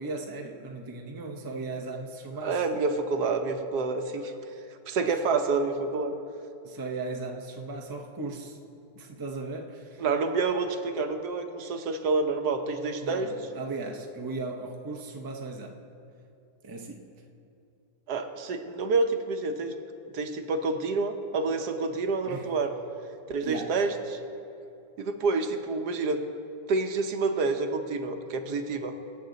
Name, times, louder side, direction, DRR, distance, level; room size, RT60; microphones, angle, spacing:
voice 1, 0.0-2.6 6.6-8.6 9.0-10.0 13.0-15.8 16.6-17.1 22.3-22.5 23.4-23.7, right 3 dB, 20° right, 1 dB, 0.7 m, -37 dB
voice 2, 2.4-4.3 4.9-6.1 10.0-13.3 18.1-19.7 20.1-22.7 23.3-24.2 25.0-26.2 26.7-28.9, right 4 dB, 75° right, 6 dB, 1.4 m, -28 dB
24.5 x 8.4 x 4.0 m, 2.6 s
omnidirectional pair, 1.8 m